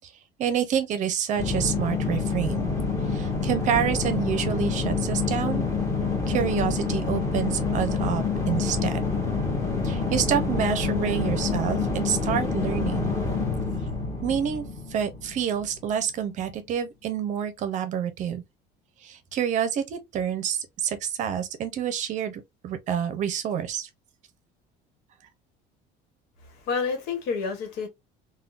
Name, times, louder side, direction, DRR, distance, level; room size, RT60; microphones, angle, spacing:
voice 1, 0.4-2.7 3.1-5.7 6.3-9.1 9.8-13.1 14.2-14.6 14.9-18.4 19.0-23.9, right 8 dB, 45° right, 0.6 m, -28 dB
sound 1, 1.4-15.8, left 4 dB, 20° left, 1.1 m, -27 dB
voice 2, 26.4-27.9, left 5 dB, 80° left, 1.2 m, -29 dB
3.6 x 2.2 x 2.4 m
cardioid pair, 145°, 17 cm